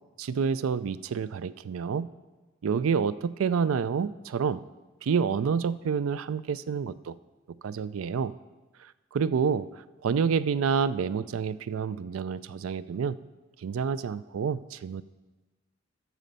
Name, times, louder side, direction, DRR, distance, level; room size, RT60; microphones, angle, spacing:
voice 1, 0.2-2.1 2.6-4.6 5.0-7.1 7.6-8.3 9.1-9.7 10.0-13.2 13.6-15.0, right 6 dB, 85° right, 16 dB, 0.4 m, -28 dB
9.2 x 6.3 x 6.7 m, 1.2 s
head